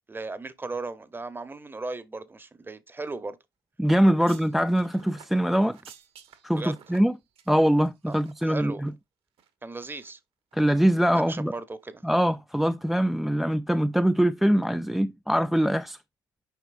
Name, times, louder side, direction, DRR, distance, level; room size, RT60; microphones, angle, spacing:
voice 1, 0.1-3.4 6.5-6.8 8.1-8.8 9.6-10.2 11.1-12.0, right 3 dB, 20° right, 0.9 m, -36 dB
voice 2, 3.8-5.8 6.4-7.2 7.5-8.9 10.5-11.5 12.0-16.0, equal, 5° right, 0.3 m, -23 dB
sound 1, 3.8-8.5 8.8-8.9 9.4-10.1 10.5-10.7 11.0-11.2 11.5-11.6, right 8 dB, 55° right, 1.2 m, -53 dB
8.1 x 5.2 x 2.5 m
hypercardioid pair, 65°, 11 cm